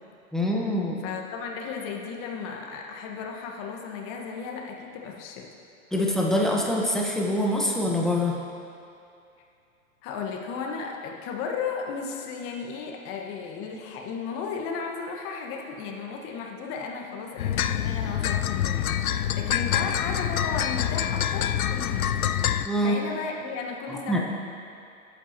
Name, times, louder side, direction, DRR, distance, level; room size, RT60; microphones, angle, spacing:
voice 1, 0.3-1.0 5.9-8.4 22.6-23.0 23.9-24.2, left 1 dB, ahead, -3 dB, 1.1 m, -25 dB
voice 2, 1.0-5.5 10.0-22.1 22.8-24.2, left 5 dB, 30° left, 1 dB, 1.5 m, -34 dB
sound 1, 17.4-22.7, left 10 dB, 80° left, 0.6 m, -26 dB
19.0 x 8.3 x 3.0 m, 2.5 s
hypercardioid pair, 120°, 42 cm